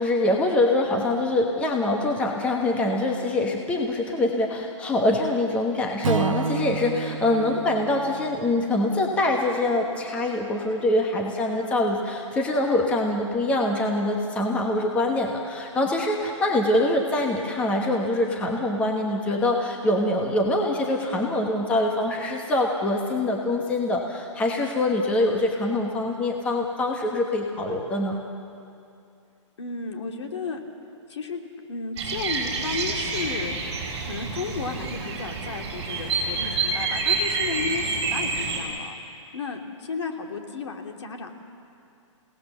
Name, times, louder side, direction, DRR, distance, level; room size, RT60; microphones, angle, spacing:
voice 1, 0.0-28.2, left 1 dB, 10° left, 1 dB, 1.2 m, -24 dB
Strum, 6.0-10.4, right 6 dB, 80° right, 0.6 m, -31 dB
voice 2, 29.6-30.6 31.1-31.4 31.7-33.5 34.1-39.0 39.3-41.3, left 5 dB, 60° left, 3 dB, 2.7 m, -33 dB
Bird vocalization bird call bird song, 32.0-38.6, right 4 dB, 30° right, 5.1 m, -28 dB
29.5 x 18.0 x 7.3 m, 2.6 s
hypercardioid pair, 170°, 16 cm